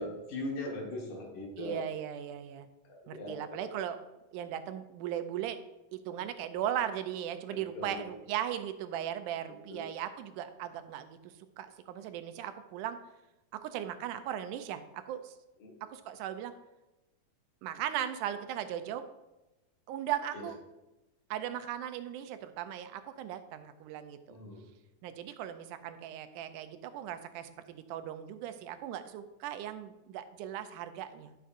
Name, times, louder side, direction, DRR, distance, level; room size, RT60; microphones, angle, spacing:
voice 1, 0.0-1.8 2.9-3.6 7.5-8.0 9.7-9.9 15.6-15.8 20.3-20.5 24.3-24.7, left 1 dB, 85° left, -1 dB, 3.4 m, -40 dB
voice 2, 1.6-2.7 3.1-4.0 4.3-5.6 5.9-13.0 13.5-15.3 15.8-16.5 17.6-19.1 19.9-20.6 21.3-24.4 25.0-31.4, right 10 dB, 85° right, 9 dB, 2.1 m, -38 dB
12.5 x 6.6 x 2.5 m, 0.99 s
omnidirectional pair, 3.6 m